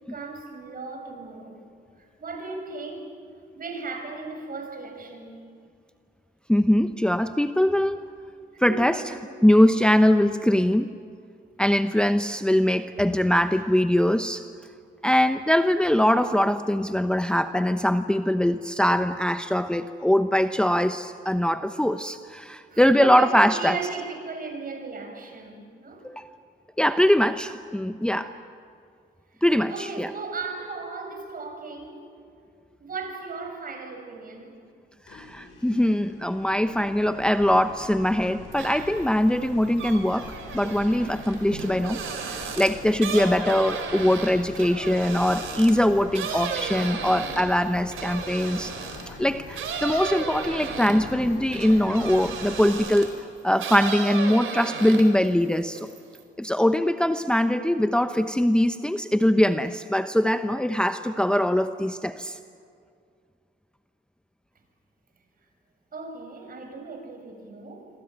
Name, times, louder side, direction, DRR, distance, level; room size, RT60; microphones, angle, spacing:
voice 1, 0.1-1.7 2.0-3.1 3.5-5.4 8.5-9.3 13.0-13.2 13.5-13.6 22.7-26.0 29.3-32.0 32.8-34.6 65.9-67.9, right 4 dB, 45° right, 4 dB, 6.7 m, -36 dB
voice 2, 6.5-8.0 8.6-9.0 9.4-10.9 11.6-14.4 15.0-23.7 26.0-26.3 26.8-28.3 29.4-30.1 35.1-42.0 42.2-48.7 49.1-53.1 53.4-55.9 56.4-62.4, left 1 dB, 5° left, 9 dB, 0.9 m, -22 dB
sound 1, 35.1-52.7, left 4 dB, 85° left, 6.1 m, -43 dB
sound 2, 38.5-39.1 39.4-49.1 49.5-53.2 53.6-55.3 55.6-56.2, right 6 dB, 85° right, 4.3 m, -34 dB
26.5 x 24.5 x 9.0 m, 2.3 s
cardioid pair, 90°, 20 cm